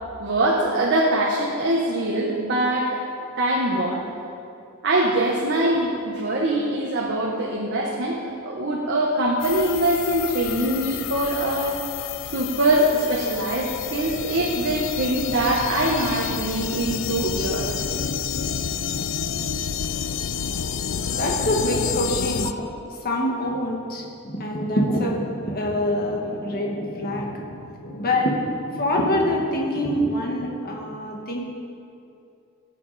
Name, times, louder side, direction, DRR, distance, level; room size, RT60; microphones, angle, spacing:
voice 1, 0.2-3.0 3.4-4.0 4.8-11.8 12.3-17.7 21.1-21.2, right 1 dB, 55° right, -3 dB, 1.3 m, -23 dB
sound 1, 9.4-22.5, left 8 dB, 60° left, 0.5 m, -29 dB
voice 2, 21.1-22.5 23.0-31.5, left 1 dB, 45° left, -1 dB, 1.7 m, -25 dB
17.5 x 8.4 x 4.3 m, 2.6 s
head